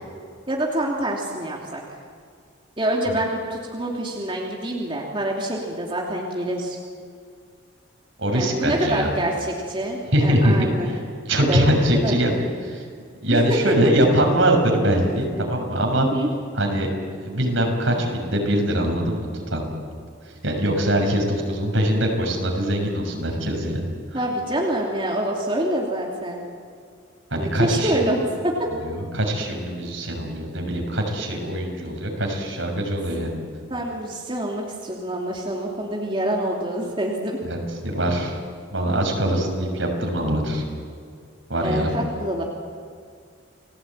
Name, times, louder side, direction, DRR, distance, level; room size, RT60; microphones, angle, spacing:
voice 1, 0.5-1.8 2.8-6.8 8.3-10.9 11.5-12.1 13.3-13.9 16.0-16.3 24.1-26.4 27.4-28.7 33.7-37.4 41.6-42.4, right 1 dB, 25° right, -2 dB, 2.9 m, -26 dB
voice 2, 8.2-9.1 10.1-11.0 11.3-12.3 12.6-12.8 13.2-16.1 16.5-16.9 17.2-19.6 20.2-23.8 24.1-24.2 27.3-28.1 28.8-33.3 37.4-38.4 38.7-40.6 41.5-41.9, right 1 dB, 70° right, 1 dB, 6.4 m, -22 dB
30.0 x 19.5 x 8.9 m, 2.2 s
head